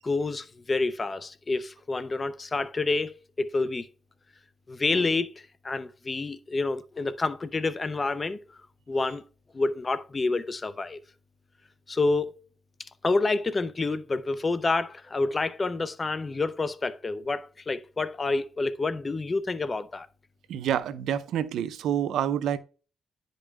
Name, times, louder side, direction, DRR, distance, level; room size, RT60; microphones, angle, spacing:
voice 1, 0.0-3.9 4.7-8.4 8.9-9.2 9.5-11.0 11.9-12.3 12.8-20.1, left 3 dB, 25° left, 0.5 m, -28 dB
voice 2, 20.5-22.6, right 9 dB, 85° right, 0.5 m, -27 dB
9.8 x 5.3 x 2.3 m
cardioid pair, 120°, 0 cm